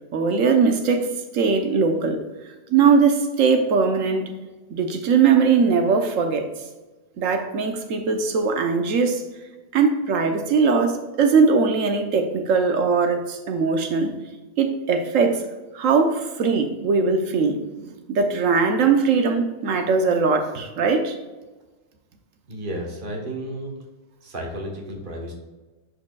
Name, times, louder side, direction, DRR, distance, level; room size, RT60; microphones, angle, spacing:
voice 1, 0.1-2.2 2.7-4.3 4.7-6.5 7.2-9.2 9.7-14.1 14.6-15.4 15.7-21.1, right 5 dB, 75° right, 6 dB, 1.2 m, -20 dB
voice 2, 22.5-23.7 24.2-25.3, right 1 dB, 40° right, 0 dB, 1.4 m, -32 dB
11.0 x 5.0 x 2.3 m, 1.2 s
omnidirectional pair, 1.4 m